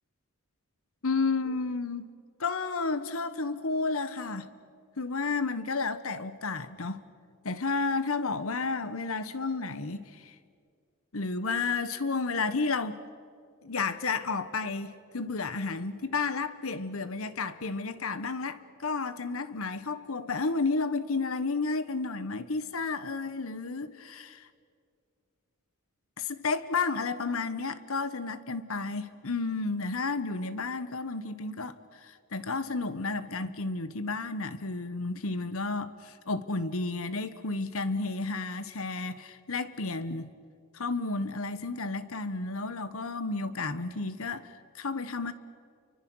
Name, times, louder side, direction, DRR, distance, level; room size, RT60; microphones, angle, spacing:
voice 1, 1.0-2.1 2.4-4.5 5.0-7.0 7.4-10.3 11.1-13.0 13.6-24.5 26.2-31.8 32.0-40.3 40.7-45.3, left 3 dB, 70° left, 1.2 m, -32 dB
29.0 x 24.0 x 6.3 m
head